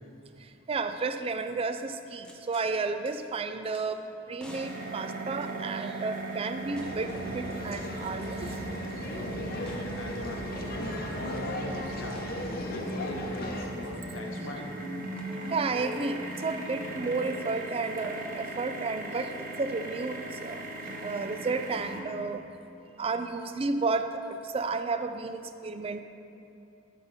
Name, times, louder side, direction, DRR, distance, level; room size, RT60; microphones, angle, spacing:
voice 1, 0.7-4.0 4.3-7.1 7.3-8.5 15.5-20.6 21.0-22.4 23.0-26.0, right 4 dB, 30° right, 9 dB, 0.3 m, -32 dB
sound 1, 2.2-2.7 3.1-3.2 3.7-3.9 4.4-5.9 6.8-7.2 7.5-7.6 9.7-9.9 12.2-12.3 15.2-15.3, left 1 dB, 5° left, 0.8 m, -51 dB
sound 2, 4.5-22.0, right 2 dB, 45° right, 1.0 m, -38 dB
sound 3, 6.5-13.6, left 1 dB, 50° left, 0.8 m, -37 dB
voice 2, 9.1-14.7, left 1 dB, 80° left, 0 dB, 1.1 m, -42 dB
12.0 x 5.4 x 4.1 m, 2.8 s
head